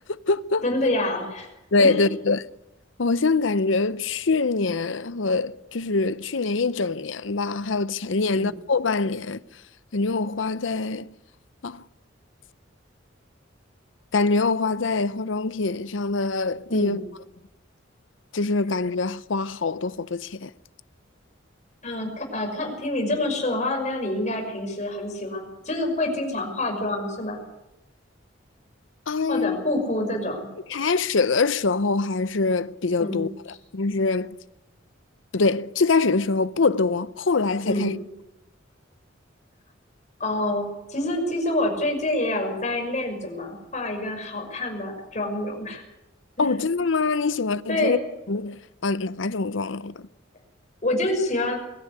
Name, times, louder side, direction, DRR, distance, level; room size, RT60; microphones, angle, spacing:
voice 1, 0.0-0.6 1.7-2.4 3.0-9.4 9.9-11.1 11.6-11.8 14.1-17.0 18.3-20.5 29.1-29.6 30.7-33.3 33.7-34.4 35.3-38.0 46.4-48.0 48.3-50.1, left 3 dB, 75° left, 0.7 m, -24 dB
voice 2, 0.6-1.5 1.8-2.0 8.3-8.5 16.7-17.0 21.8-27.4 29.3-30.5 33.0-33.3 37.6-38.0 40.2-45.8 46.4-46.5 47.7-48.0 50.8-51.6, left 1 dB, 40° left, 5.8 m, -27 dB
22.0 x 14.0 x 9.6 m
head